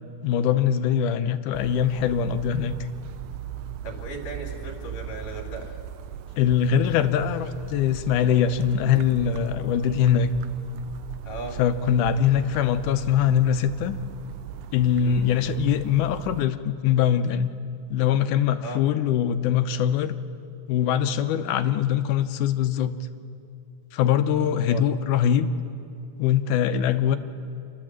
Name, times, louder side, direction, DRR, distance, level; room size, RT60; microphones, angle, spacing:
voice 1, 0.2-2.8 6.4-10.3 11.6-14.0 14.7-17.5 17.9-20.1 20.7-22.9 23.9-25.5 26.2-27.2, left 9 dB, 85° left, 9 dB, 2.3 m, -22 dB
sound 1, 1.5-16.5, right 11 dB, 80° right, 2.0 m, -39 dB
voice 2, 3.8-5.7 11.2-11.6 15.0-15.3 18.6-18.8 24.4-24.8, right 1 dB, 60° left, 0 dB, 3.6 m, -37 dB
30.0 x 12.5 x 7.5 m, 2.5 s
omnidirectional pair, 3.5 m